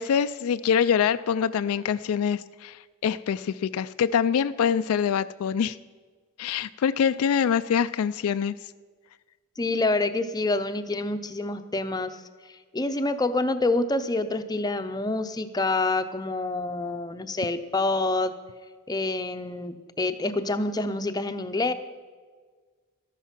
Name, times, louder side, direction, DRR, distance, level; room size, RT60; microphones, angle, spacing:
voice 1, 0.0-5.8 6.4-8.6, left 7 dB, 70° left, 13 dB, 0.3 m, -25 dB
voice 2, 9.6-12.2 12.7-18.3 18.9-21.7, left 2 dB, 20° left, 9 dB, 0.6 m, -27 dB
13.0 x 10.0 x 5.9 m, 1.5 s
head